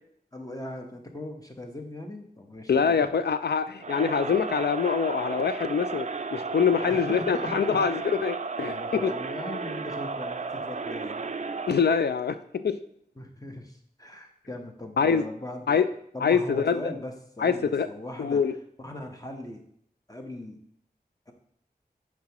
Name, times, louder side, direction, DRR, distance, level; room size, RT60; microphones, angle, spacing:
voice 1, 0.3-3.1 6.8-8.0 8.6-11.3 13.2-15.8 16.1-18.4 18.8-19.6 20.1-20.6 21.3-21.4, left 1 dB, 20° left, 3 dB, 1.0 m, -39 dB
voice 2, 2.7-9.1 11.7-12.8 15.0-15.3 15.7-15.9 16.2-16.9 17.4-17.9 18.2-18.5, left 6 dB, 80° left, 11 dB, 0.4 m, -25 dB
Crowd, 3.8-11.9, right 4 dB, 45° right, 0.4 m, -34 dB
7.4 x 4.8 x 3.0 m, 0.68 s
wide cardioid pair, 40°, 17 cm